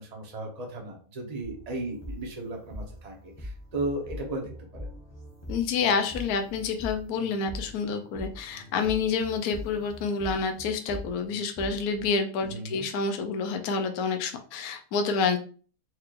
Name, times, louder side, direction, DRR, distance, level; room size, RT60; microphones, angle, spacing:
voice 1, 0.0-4.9 12.5-12.8, right 2 dB, 30° right, 0 dB, 0.9 m, -35 dB
sound 1, 1.4-12.1, left 1 dB, 20° left, 1.0 m, -42 dB
voice 2, 5.5-15.4, left 5 dB, 70° left, 5 dB, 1.0 m, -28 dB
4.5 x 3.1 x 2.5 m, 0.41 s
omnidirectional pair, 1.8 m